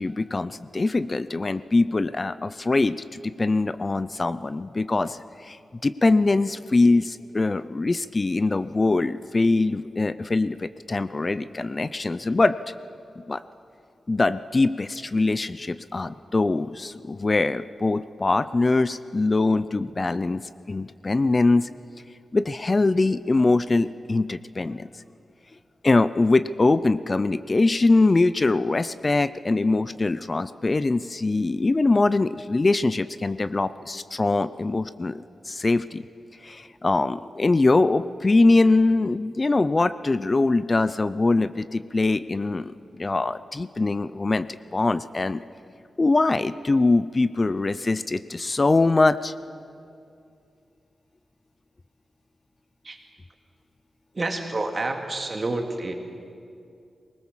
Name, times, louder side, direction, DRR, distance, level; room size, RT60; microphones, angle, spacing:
voice 1, 0.0-5.6 5.8-12.6 13.3-13.4 14.1-20.4 20.7-21.7 22.3-24.9 25.8-36.0 36.4-44.5 44.7-45.4 46.0-49.3, left 3 dB, 25° left, 14 dB, 0.4 m, -22 dB
voice 2, 54.1-55.9, right 2 dB, 30° right, 4 dB, 2.2 m, -28 dB
23.0 x 19.5 x 7.3 m, 2.5 s
wide cardioid pair, 165°, 0 cm